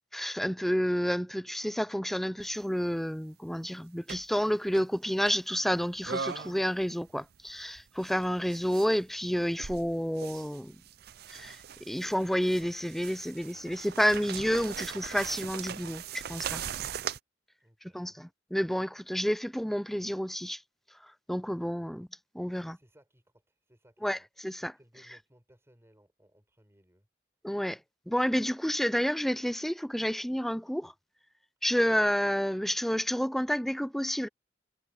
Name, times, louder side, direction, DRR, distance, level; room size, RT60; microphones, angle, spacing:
voice 1, 0.1-10.8 11.3-16.6 17.9-20.6 21.0-22.1 22.3-22.8 24.0-24.8 27.4-27.8 28.1-30.9 31.6-34.3, equal, ahead, 0.4 m, -30 dB
sound 1, 2.4-2.6 4.1-4.4 4.7-4.8 5.3-5.4 6.0-6.8 7.1-9.0 9.5-17.2, right 7 dB, 55° right, 0.5 m, -40 dB
voice 2, 17.6-18.3 22.5-24.3 24.8-27.1, equal, 15° right, 6.5 m, -63 dB
head